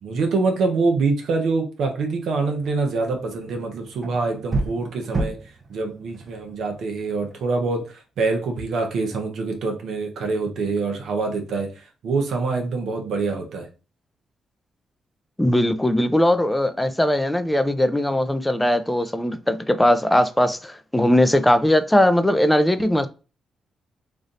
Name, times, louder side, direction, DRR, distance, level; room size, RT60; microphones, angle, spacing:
voice 1, 0.0-5.4 5.7-13.7, right 3 dB, 75° right, 1.0 m, -25 dB
sound 1, 2.6-7.5, right 2 dB, 40° right, 0.9 m, -32 dB
voice 2, 15.4-23.1, left 1 dB, 10° left, 0.5 m, -19 dB
3.3 x 2.6 x 3.9 m
cardioid pair, 65°, 0 cm